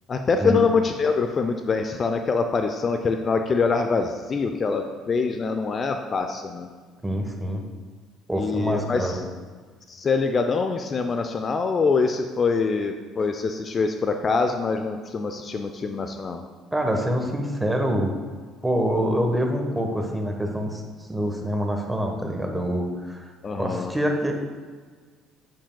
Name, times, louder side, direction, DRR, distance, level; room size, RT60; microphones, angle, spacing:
voice 1, 0.1-6.7 8.3-9.2 9.9-16.4 23.4-23.9, left 4 dB, 40° left, 6 dB, 0.5 m, -24 dB
voice 2, 7.0-7.6 8.3-9.2 16.7-18.1 18.6-20.8 21.1-23.2 23.6-24.3, equal, 10° right, 3 dB, 1.2 m, -25 dB
8.5 x 7.5 x 2.3 m, 1.5 s
hypercardioid pair, 55°, 0 cm